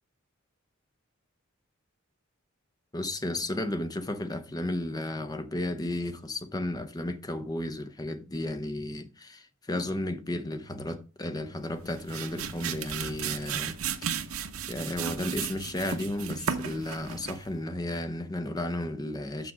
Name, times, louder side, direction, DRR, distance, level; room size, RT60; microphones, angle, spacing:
voice 1, 2.9-13.8 14.0-14.2 14.7-19.5, left 1 dB, 20° left, 0.8 m, -33 dB
sound 1, 11.7-17.5, right 7 dB, 85° right, 0.8 m, -35 dB
6.6 x 6.2 x 4.9 m
head